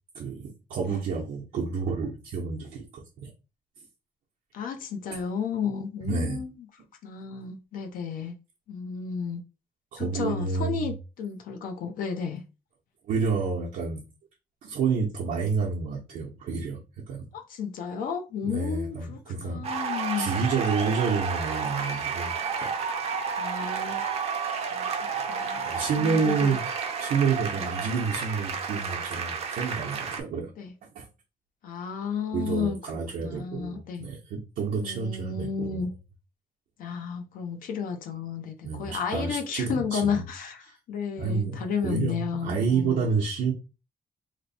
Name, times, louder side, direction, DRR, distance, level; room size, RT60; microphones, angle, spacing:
voice 1, 0.1-3.3 6.0-6.4 9.9-10.9 13.1-14.0 14.6-16.8 17.1-17.3 18.4-19.7 20.2-22.3 22.6-22.7 25.6-26.7 27.0-30.5 30.9-31.1 32.3-35.9 38.6-40.2 40.7-40.8 41.2-43.5, right 5 dB, 75° right, 0.8 m, -29 dB
voice 2, 4.5-6.7 7.0-8.3 8.7-9.4 10.0-12.4 17.3-20.4 23.4-24.0 24.7-25.0 25.3-25.7 26.0-26.5 27.6-27.7 30.6-30.7 31.6-32.8 33.2-34.1 34.8-35.9 36.8-43.1, left 6 dB, 70° left, 0.7 m, -32 dB
sound 1, 19.6-30.2, right 6 dB, 45° right, 0.6 m, -31 dB
3.0 x 2.0 x 4.1 m
cardioid pair, 165°, 15 cm